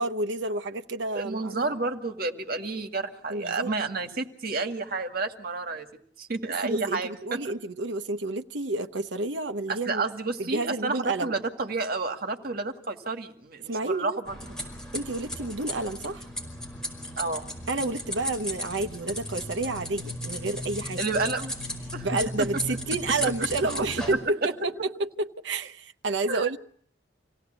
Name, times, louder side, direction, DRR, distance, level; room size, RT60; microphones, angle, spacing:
voice 1, 0.0-1.5 3.3-3.7 6.6-10.0 10.4-11.3 13.7-14.2 14.9-16.3 17.7-21.0 22.0-26.6, right 2 dB, 75° right, 1.0 m, -30 dB
voice 2, 1.1-5.9 6.2-7.4 9.7-14.6 17.2-17.5 21.0-21.6 21.9-22.1 22.4-22.8 23.2-23.3 23.9-24.2 26.3-26.6, right 3 dB, 55° right, 2.1 m, -30 dB
sound 1, 14.3-24.1, left 1 dB, 5° left, 5.1 m, -35 dB
27.0 x 17.0 x 8.1 m
head